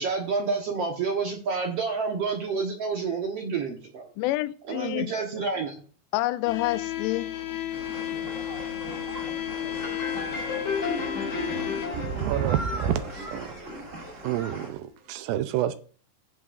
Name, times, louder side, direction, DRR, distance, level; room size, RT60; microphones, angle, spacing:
voice 1, 0.0-4.1 4.7-5.7, right 4 dB, 60° right, 1.7 m, -29 dB
voice 2, 4.2-5.1 6.1-7.4, left 17 dB, 85° left, 1.9 m, -28 dB
sound 1, 6.5-11.9, left 12 dB, 65° left, 2.6 m, -33 dB
sound 2, 7.7-14.7, right 1 dB, 25° right, 2.3 m, -39 dB
sound 3, 9.8-14.4, left 4 dB, 25° left, 2.5 m, -34 dB
voice 3, 11.9-13.5 14.2-15.7, right 11 dB, 80° right, 2.5 m, -28 dB
16.5 x 7.6 x 2.6 m
omnidirectional pair, 4.2 m